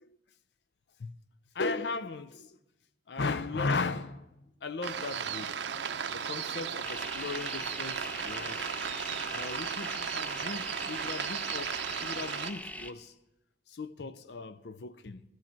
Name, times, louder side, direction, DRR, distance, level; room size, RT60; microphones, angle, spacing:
voice 1, 1.5-2.6 3.1-4.3 4.6-5.7 6.1-8.7 9.3-13.1 13.7-15.2, left 3 dB, 65° left, 0.6 m, -37 dB
sound 1, 4.8-12.5, right 7 dB, 75° right, 0.6 m, -35 dB
sound 2, 6.8-12.9, left 1 dB, 10° left, 0.4 m, -42 dB
16.0 x 13.0 x 4.4 m
head